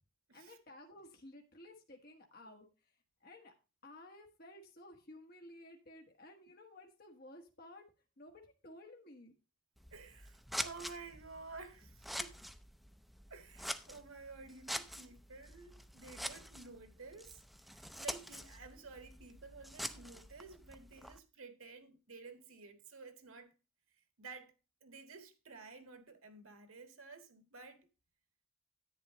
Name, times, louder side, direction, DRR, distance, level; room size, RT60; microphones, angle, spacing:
voice 1, 0.3-3.5 3.8-7.9 8.2-9.3, left 1 dB, 45° left, 1.4 m, -55 dB
Scissors, 9.8-21.2, equal, ahead, 0.5 m, -46 dB
voice 2, 9.9-12.3 13.3-23.5 24.2-24.5 24.8-27.9, right 4 dB, 90° right, 1.6 m, -52 dB
10.5 x 8.9 x 3.0 m
head